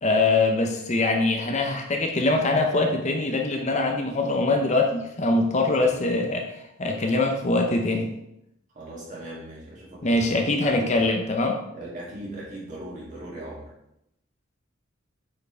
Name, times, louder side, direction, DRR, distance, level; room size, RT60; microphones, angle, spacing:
voice 1, 0.0-8.1 10.0-11.6, left 2 dB, 35° left, 3 dB, 0.7 m, -23 dB
voice 2, 5.6-5.9 8.7-10.2 10.6-11.1 11.7-13.7, right 1 dB, 40° right, -5 dB, 2.5 m, -38 dB
8.2 x 4.7 x 3.4 m, 0.83 s
head